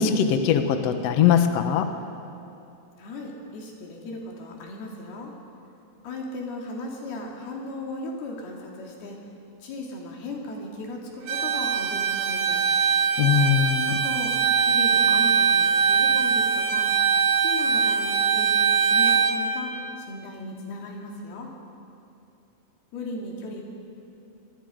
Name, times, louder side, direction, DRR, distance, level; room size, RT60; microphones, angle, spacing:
voice 1, 0.0-1.9 13.2-13.9, left 8 dB, 65° left, 7 dB, 1.7 m, -21 dB
voice 2, 3.0-5.3 6.0-9.2 9.6-12.6 13.9-16.9 17.4-21.5 22.9-23.6, left 2 dB, 85° left, -1 dB, 4.6 m, -36 dB
Bowed string instrument, 11.3-19.4, right 6 dB, 80° right, 3.2 m, -22 dB
25.5 x 21.0 x 5.2 m, 2.8 s
omnidirectional pair, 4.4 m